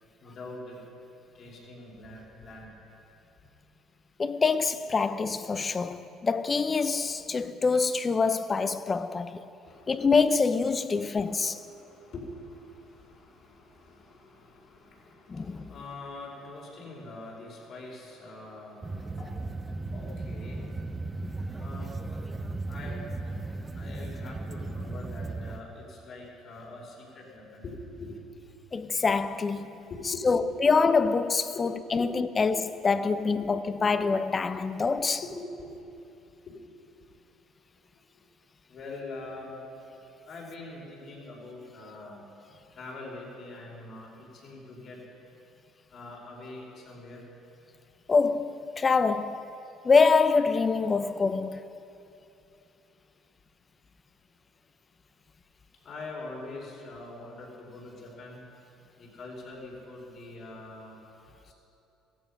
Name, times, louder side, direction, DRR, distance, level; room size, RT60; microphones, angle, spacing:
voice 1, 0.2-0.8 1.3-2.8 7.4-7.5 9.6-10.1 10.9-18.8 19.2-19.4 19.9-20.7 21.6-22.0 22.7-23.0 23.7-28.2 29.9-30.4 31.5-32.1 32.4-32.5 33.4-33.5 34.8-34.9 35.2-35.9 36.5-36.6 38.7-39.6 40.3-42.2 42.7-45.0 45.9-47.3 55.8-58.4 59.0-61.0 61.4-61.5, left 2 dB, 55° left, 4.9 m, -44 dB
voice 2, 4.2-9.4 9.9-11.6 15.3-15.7 28.7-29.7 30.2-35.2 48.1-49.5 49.8-51.6, left 4 dB, 30° left, 0.7 m, -25 dB
sound 1, 18.8-25.6, right 2 dB, 20° right, 0.8 m, -36 dB
16.0 x 15.5 x 5.7 m
cardioid pair, 100°, 0 cm